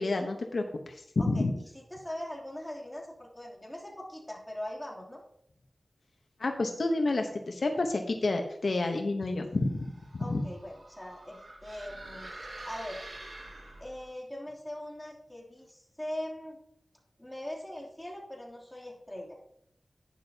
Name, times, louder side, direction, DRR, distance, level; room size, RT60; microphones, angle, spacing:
voice 1, 0.0-1.5 6.4-9.9 10.1-10.5, left 2 dB, 75° left, 4 dB, 1.0 m, -29 dB
voice 2, 1.9-5.2 10.2-12.3 12.6-13.0 13.8-16.6 17.2-19.4, left 1 dB, 15° left, -2 dB, 2.9 m, -41 dB
sound 1, 9.6-14.1, right 2 dB, 75° right, 2.3 m, -46 dB
11.5 x 9.9 x 2.8 m, 0.74 s
wide cardioid pair, 65°, 0 cm